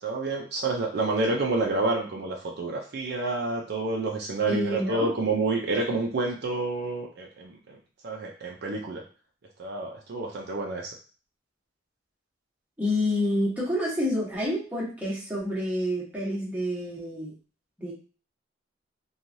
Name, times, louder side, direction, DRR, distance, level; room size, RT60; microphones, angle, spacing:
voice 1, 0.0-7.6 8.0-9.0 9.6-10.9, right 3 dB, 55° right, 1 dB, 0.4 m, -28 dB
voice 2, 4.5-5.1 12.8-17.3 17.8-17.9, left 1 dB, 10° right, -6 dB, 1.0 m, -28 dB
3.0 x 2.3 x 2.6 m, 0.37 s
head